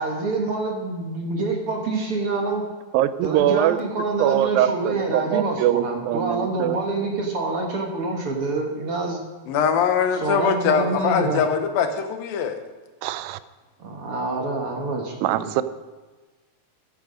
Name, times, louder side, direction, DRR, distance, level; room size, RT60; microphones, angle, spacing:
voice 1, 0.0-2.6 3.2-9.2 10.1-11.4 13.8-15.5, right 3 dB, 50° right, 1 dB, 1.9 m, -26 dB
voice 2, 2.9-3.8 4.2-6.8 13.0-13.4 15.2-15.6, right 12 dB, 90° right, 14 dB, 2.4 m, -22 dB
voice 3, 9.5-12.6, left 7 dB, 85° left, 7 dB, 2.9 m, -22 dB
14.5 x 10.0 x 5.1 m, 1.3 s
omnidirectional pair, 4.0 m